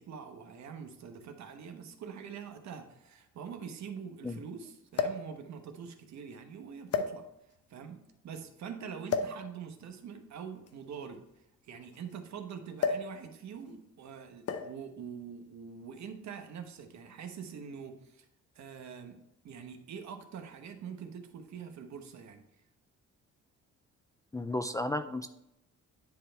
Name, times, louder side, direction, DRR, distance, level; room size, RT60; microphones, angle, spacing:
voice 1, 0.0-7.3 7.7-11.2 11.6-18.3 18.5-19.2 19.4-22.4, right 7 dB, 65° right, 6 dB, 1.1 m, -44 dB
sound 1, 1.2-1.3 2.4-2.5 2.7-2.8 4.9-5.3 6.2-6.3 6.9-7.6 9.1-9.4 10.5-12.2 12.8-13.2 13.4-13.7 14.5-14.8 15.8-16.1, left 5 dB, 55° left, 0.8 m, -33 dB
voice 2, 24.3-25.3, left 2 dB, 10° left, 8 dB, 0.3 m, -33 dB
10.0 x 3.4 x 4.4 m, 0.84 s
cardioid pair, 90°, 30 cm